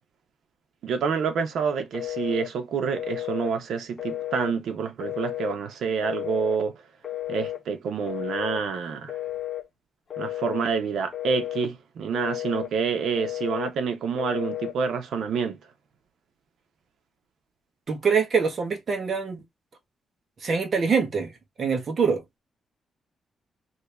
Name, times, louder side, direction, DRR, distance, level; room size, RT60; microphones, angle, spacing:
voice 1, 0.8-6.8 7.3-9.2 10.2-15.6, right 6 dB, 75° right, 0.9 m, -28 dB
Telephone, 1.9-2.5 3.0-3.5 4.0-4.6 5.0-5.6 6.0-6.6 7.0-7.6 8.1-8.6 9.1-9.7 10.1-10.7 11.1-11.7 12.1-12.7 13.2-13.7 14.2-14.8, left 13 dB, 45° left, 0.8 m, -32 dB
voice 2, 17.9-19.4 20.4-21.3 21.6-22.2, right 5 dB, 40° right, 1.2 m, -24 dB
2.9 x 2.8 x 3.3 m
wide cardioid pair, 160°, 0 cm